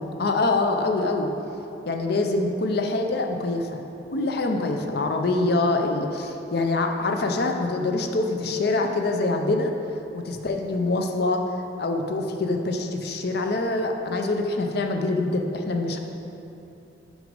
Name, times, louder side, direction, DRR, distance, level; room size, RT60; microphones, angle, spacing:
voice 1, 0.2-1.3 1.9-3.8 4.1-9.7 10.1-11.4 11.8-16.0, left 2 dB, 55° left, 4 dB, 0.5 m, -25 dB
6.1 x 5.1 x 5.3 m, 2.9 s
head